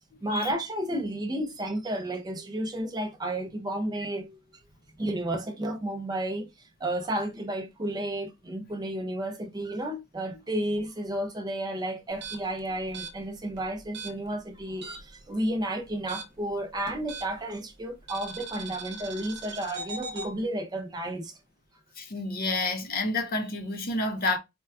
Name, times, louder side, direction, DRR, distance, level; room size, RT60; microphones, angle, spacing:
voice 1, 0.2-4.4 5.0-6.5 6.8-21.3, right 1 dB, 20° right, 0.4 m, -32 dB
sound 1, 12.1-15.2 15.5-17.5 18.1-20.3, right 3 dB, 55° right, 0.8 m, -40 dB
voice 2, 22.0-24.4, left 2 dB, 45° left, 0.6 m, -29 dB
4.3 x 2.2 x 2.2 m
head